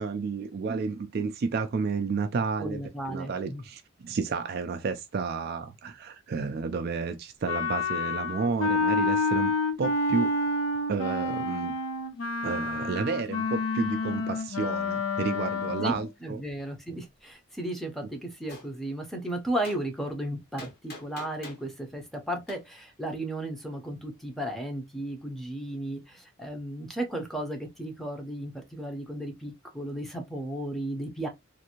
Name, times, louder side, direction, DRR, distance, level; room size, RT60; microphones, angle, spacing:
voice 1, 0.0-9.5 9.8-10.4 10.9-11.7 12.4-16.4, right 4 dB, 50° right, 0.3 m, -31 dB
voice 2, 2.6-3.6 15.8-31.3, right 1 dB, ahead, 0.6 m, -34 dB
Wind instrument woodwind instrument, 7.5-16.1, left 3 dB, 80° left, 0.6 m, -29 dB
Gunshot gunfire, 18.5-18.7 19.6-19.8 20.6-21.7 22.5-22.6, left 2 dB, 45° left, 1.2 m, -43 dB
2.6 x 2.5 x 2.8 m
head